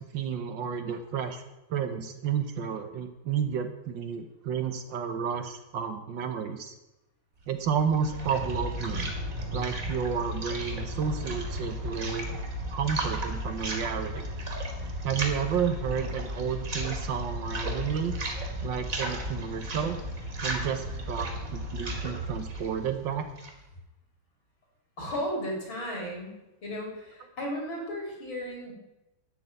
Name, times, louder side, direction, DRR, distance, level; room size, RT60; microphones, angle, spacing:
voice 1, 0.0-1.4 1.7-6.7 7.5-9.1 9.5-12.3 12.7-14.2 15.0-18.2 18.6-20.0 20.4-23.3, right 7 dB, 65° right, 8 dB, 1.5 m, -31 dB
sound 1, 7.6-23.7, right 1 dB, 40° right, 2.5 m, -34 dB
voice 2, 25.0-28.7, equal, 60° left, -1 dB, 4.8 m, -35 dB
12.0 x 6.1 x 8.8 m, 0.95 s
omnidirectional pair, 2.4 m